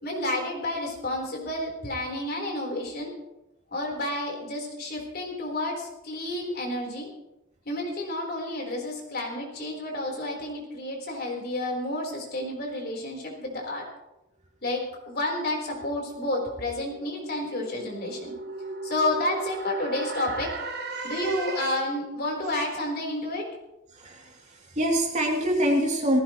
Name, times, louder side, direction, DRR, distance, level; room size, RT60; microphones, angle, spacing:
voice 1, 0.0-3.1 3.7-7.1 7.7-13.8 14.6-18.3 18.8-20.5 21.0-23.5, left 1 dB, 50° left, 0 dB, 4.2 m, -30 dB
sound 1, 16.1-22.1, right 3 dB, 50° right, 1.2 m, -37 dB
voice 2, 23.9-26.2, equal, 35° right, -1 dB, 2.9 m, -25 dB
18.5 x 16.0 x 3.2 m, 0.92 s
head